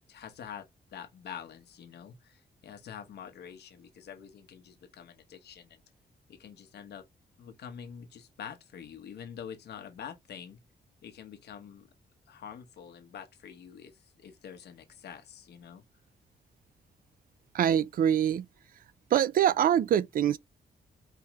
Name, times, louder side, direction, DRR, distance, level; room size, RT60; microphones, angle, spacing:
voice 1, 0.0-5.8 6.3-7.1 7.4-10.6 11.0-11.9 12.3-15.8, left 8 dB, 90° left, 1.1 m, -46 dB
voice 2, 17.5-18.5 19.1-20.4, right 10 dB, 60° right, 0.4 m, -24 dB
4.7 x 3.5 x 3.1 m
wide cardioid pair, 145°, 17 cm